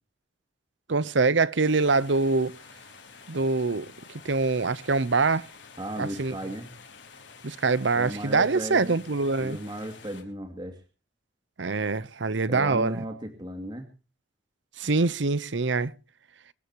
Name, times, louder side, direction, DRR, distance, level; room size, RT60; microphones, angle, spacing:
voice 1, 0.9-2.5 3.3-3.9 4.2-5.5 6.0-6.4 7.4-9.6 11.6-13.0 14.8-15.9, right 3 dB, 80° right, 0.9 m, -24 dB
sound 1, 1.6-10.2, left 5 dB, 80° left, 5.0 m, -49 dB
voice 2, 5.8-6.7 8.0-9.0 9.4-10.8 12.5-13.9, right 1 dB, 25° right, 2.5 m, -35 dB
25.0 x 14.0 x 3.0 m
head